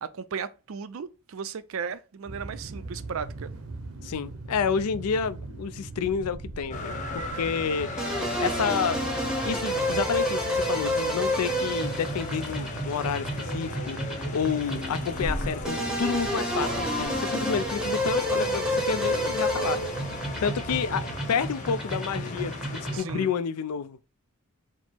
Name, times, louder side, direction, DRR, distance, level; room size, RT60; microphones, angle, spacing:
voice 1, 0.0-3.5 22.9-23.3, right 6 dB, 65° right, 0.4 m, -36 dB
sound 1, 2.2-21.2, right 2 dB, 80° right, 0.8 m, -40 dB
voice 2, 4.0-7.9 8.4-9.0 9.4-19.8 20.4-24.0, left 6 dB, 90° left, 0.4 m, -29 dB
sound 2, 6.7-23.0, left 2 dB, 35° left, 0.7 m, -37 dB
sound 3, 8.0-23.3, equal, 5° right, 0.7 m, -30 dB
4.4 x 2.0 x 4.3 m
head